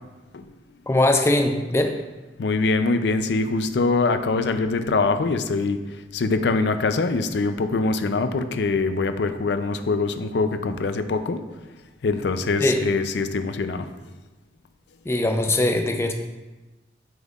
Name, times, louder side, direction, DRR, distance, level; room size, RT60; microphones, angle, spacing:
voice 1, 0.9-1.9 12.6-12.8 15.1-16.1, left 1 dB, 15° left, 4 dB, 0.5 m, -21 dB
voice 2, 2.4-5.8 6.1-11.4 12.0-13.9, left 3 dB, 70° left, 9 dB, 0.5 m, -23 dB
7.6 x 5.4 x 2.4 m, 1.1 s
head